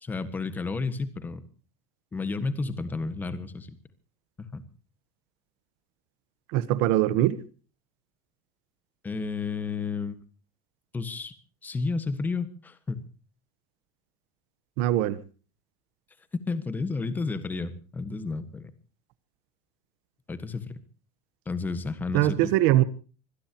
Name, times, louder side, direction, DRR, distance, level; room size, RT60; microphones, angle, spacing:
voice 1, 0.0-1.4 2.1-3.7 4.4-4.6 9.0-10.1 10.9-11.3 11.6-13.0 16.5-18.7 20.3-20.8 21.4-22.5, left 4 dB, 10° left, 1.5 m, -31 dB
voice 2, 6.5-7.4 14.8-15.2 22.1-22.8, right 14 dB, 55° right, 1.2 m, -22 dB
25.0 x 17.5 x 3.0 m
cardioid pair, 175°, 15 cm